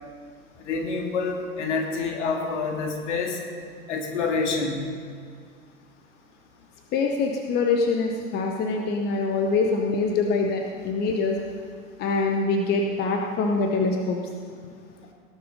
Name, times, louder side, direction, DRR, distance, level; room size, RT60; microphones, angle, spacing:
voice 1, 0.6-3.4 3.9-4.9, left 4 dB, 55° left, 2 dB, 2.4 m, -27 dB
voice 2, 6.9-11.4 12.0-14.2, left 3 dB, 25° left, 2 dB, 0.9 m, -24 dB
17.5 x 6.9 x 5.2 m, 2.1 s
figure-of-eight pair, 100°, 43 cm